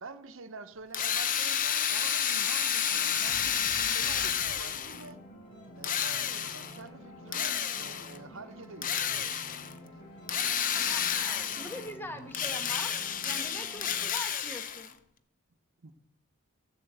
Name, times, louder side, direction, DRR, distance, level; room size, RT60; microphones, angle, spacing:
voice 1, 0.0-5.2 5.7-9.4 15.8-15.9, right 3 dB, 60° right, 0.9 m, -47 dB
Drill, 0.9-5.1 5.8-6.8 7.3-8.2 8.8-9.7 10.3-11.9 12.3-14.9, left 8 dB, 40° left, 0.7 m, -30 dB
sound 1, 2.9-14.1, left 1 dB, 55° left, 6.1 m, -49 dB
voice 2, 10.7-12.9 13.2-15.0, left 1 dB, 10° left, 1.3 m, -42 dB
15.0 x 7.5 x 8.1 m
head